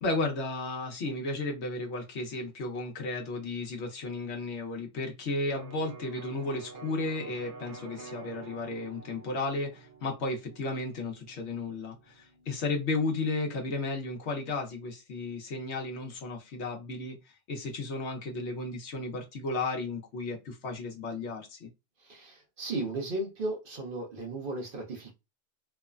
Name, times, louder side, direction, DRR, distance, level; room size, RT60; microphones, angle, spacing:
voice 1, 0.0-17.2 17.5-21.7, left 2 dB, 70° left, 1.0 m, -34 dB
Electric guitar, 5.5-13.3, right 4 dB, 80° right, 0.9 m, -49 dB
voice 2, 22.0-25.1, right 2 dB, 55° right, 0.9 m, -35 dB
3.1 x 2.1 x 2.4 m
omnidirectional pair, 1.2 m